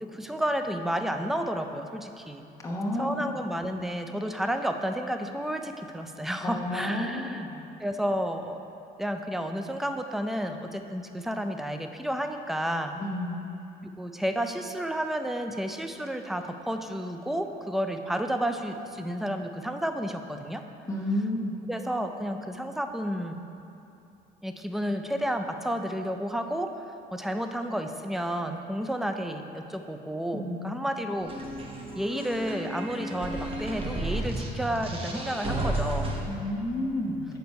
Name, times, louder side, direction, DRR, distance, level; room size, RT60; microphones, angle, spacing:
voice 1, 0.0-2.5 2.9-7.5 7.8-8.6 9.0-13.0 13.8-20.6 21.7-23.4 24.4-31.4 31.9-36.1, equal, ahead, 6 dB, 0.3 m, -31 dB
voice 2, 2.6-3.2 6.4-7.5 13.0-13.5 20.9-21.5 30.3-30.6 36.3-37.3, left 1 dB, 15° left, -2 dB, 0.9 m, -31 dB
sound 1, 31.2-36.2, right 2 dB, 35° right, 1.0 m, -33 dB
6.8 x 4.5 x 5.3 m, 2.8 s
cardioid pair, 110°, 17 cm